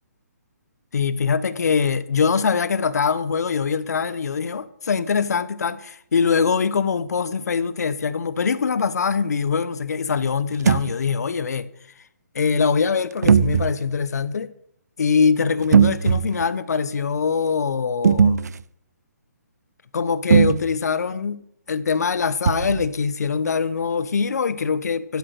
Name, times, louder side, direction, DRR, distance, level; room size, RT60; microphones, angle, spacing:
voice 1, 0.9-11.7 12.3-14.5 15.0-18.5 19.9-21.4 21.7-25.2, left 5 dB, 70° left, 1.0 m, -23 dB
sound 1, 10.5-10.9 13.2-13.8 15.6-16.5 18.0-18.6 20.3-20.8 22.5-22.9, right 6 dB, 70° right, 0.6 m, -18 dB
12.0 x 7.8 x 6.6 m
hypercardioid pair, 150°, 9 cm